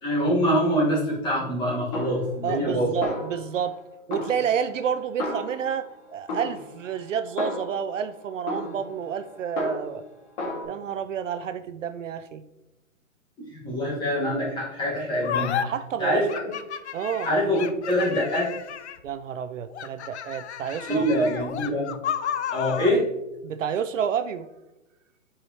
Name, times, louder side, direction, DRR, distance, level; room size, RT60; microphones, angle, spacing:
voice 1, 0.0-2.9 13.4-15.5 16.0-16.3 17.2-18.5 20.9-22.0 22.5-23.1, equal, 10° left, -5 dB, 1.6 m, -24 dB
Snare drum, 1.9-2.7 3.0-3.8 4.1-5.9 6.3-8.0 8.5-10.1 10.4-10.6, left 1 dB, 35° left, 2.1 m, -33 dB
voice 2, 2.4-3.8 4.1-10.0 10.7-12.4 15.6-16.3 16.9-17.3 19.0-21.1 23.4-24.5, right 7 dB, 65° right, 12 dB, 0.5 m, -29 dB
sound 1, 15.2-15.6 16.3-19.1 19.7-23.0, left 9 dB, 55° left, 0.6 m, -32 dB
9.9 x 4.8 x 2.9 m, 0.96 s
hypercardioid pair, 155°, 41 cm